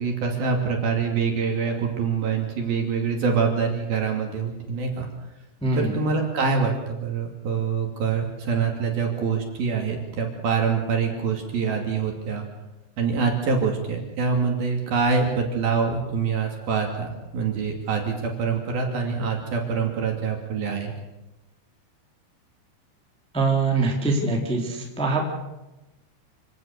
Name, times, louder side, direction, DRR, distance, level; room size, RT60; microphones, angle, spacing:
voice 1, 0.0-5.1 5.7-12.5 13.0-20.9, right 5 dB, 50° right, 2 dB, 4.0 m, -25 dB
voice 2, 5.6-5.9 23.3-25.2, right 3 dB, ahead, 0 dB, 2.7 m, -23 dB
27.5 x 18.0 x 6.8 m, 1.0 s
omnidirectional pair, 5.9 m